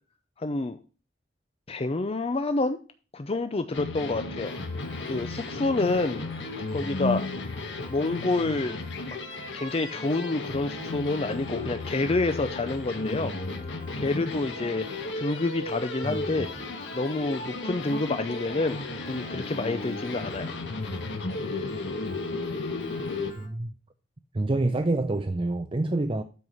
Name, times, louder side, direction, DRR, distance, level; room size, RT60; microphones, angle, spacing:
voice 1, 0.4-0.8 1.7-2.8 3.1-4.6 5.1-6.2 6.7-7.2 7.9-9.2 9.5-13.3 14.0-14.9 15.2-16.5 16.9-20.6, left 2 dB, 35° left, 0.6 m, -28 dB
sound 1, 3.7-23.3, left 2 dB, 75° left, 1.4 m, -34 dB
Piano, 4.4-23.5, left 1 dB, 50° left, 2.9 m, -48 dB
voice 2, 16.0-16.5 23.4-23.7 24.3-26.2, right 2 dB, 30° right, 0.6 m, -27 dB
12.5 x 4.8 x 5.4 m
head